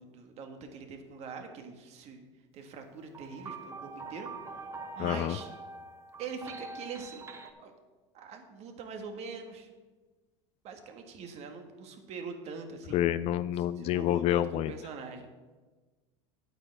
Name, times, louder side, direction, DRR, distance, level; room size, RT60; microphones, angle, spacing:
voice 1, 0.0-2.3 2.5-4.3 5.0-5.5 6.2-7.3 7.6-7.7 8.1-9.7 10.6-13.0 13.6-15.3, right 5 dB, 45° right, 5 dB, 1.6 m, -43 dB
Suspense Piano Theme, 3.1-7.5, right 3 dB, 20° right, 0.8 m, -44 dB
voice 2, 5.0-5.4 12.9-14.7, left 12 dB, 45° left, 15 dB, 0.4 m, -28 dB
9.0 x 8.9 x 4.4 m, 1.3 s
supercardioid pair, 115°, 15 cm